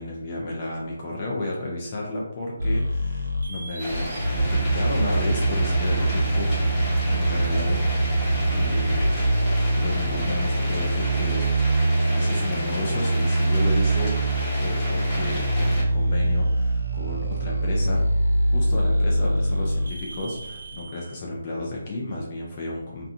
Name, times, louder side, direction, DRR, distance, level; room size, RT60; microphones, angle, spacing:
voice 1, 0.0-7.8 8.5-11.8 12.1-14.2 14.6-18.0 18.5-23.1, left 2 dB, 35° left, -3 dB, 0.5 m, -32 dB
sound 1, 2.6-21.1, right 1 dB, 75° right, 0.4 m, -24 dB
sound 2, 3.8-15.8, equal, 20° left, 1.0 m, -32 dB
2.7 x 2.2 x 2.5 m, 0.83 s
figure-of-eight pair, 155°, 0 cm